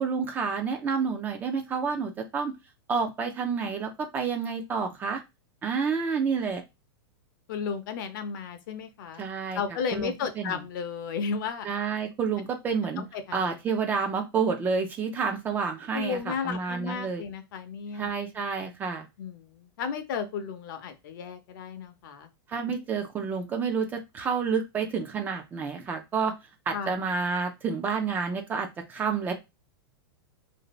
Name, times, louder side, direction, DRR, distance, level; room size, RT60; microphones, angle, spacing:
voice 1, 0.0-2.5 2.9-5.2 5.6-6.6 9.2-9.6 9.9-10.6 11.6-13.0 13.3-17.2 17.9-19.1 22.5-26.3 26.7-29.3, right 5 dB, 15° right, 4 dB, 0.3 m, -29 dB
voice 2, 7.5-9.3 9.5-11.7 13.0-13.4 15.9-18.1 19.2-22.3 26.7-26.9, left 6 dB, 55° left, 9 dB, 0.6 m, -34 dB
2.6 x 2.5 x 3.0 m, 0.23 s
supercardioid pair, 160°, 13 cm